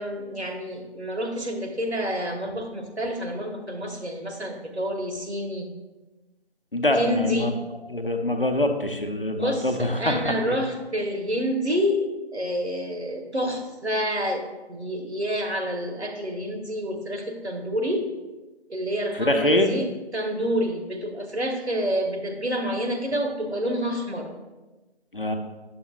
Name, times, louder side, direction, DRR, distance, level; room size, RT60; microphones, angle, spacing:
voice 1, 0.0-5.7 6.9-7.5 9.3-12.0 12.3-18.0 18.7-19.8 20.1-24.3, equal, 75° right, 2 dB, 1.3 m, -28 dB
voice 2, 6.7-7.5 7.9-10.6 19.1-19.7 25.1-25.3, left 1 dB, 55° left, 5 dB, 0.7 m, -24 dB
7.4 x 6.9 x 2.4 m, 1.1 s
figure-of-eight pair, 180°, 33 cm